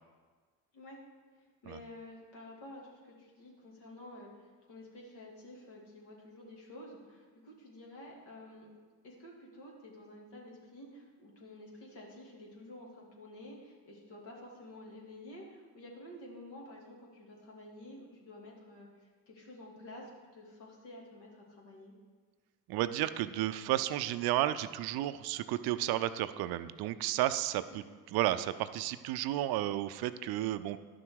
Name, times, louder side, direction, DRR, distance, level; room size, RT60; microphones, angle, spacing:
voice 1, 1.4-8.7 9.0-21.9 27.7-27.8, left 1 dB, 60° left, -2 dB, 2.7 m, -51 dB
voice 2, 22.7-30.8, right 14 dB, 55° right, 12 dB, 0.6 m, -32 dB
11.0 x 6.2 x 4.7 m, 1.5 s
hypercardioid pair, 60°, 45 cm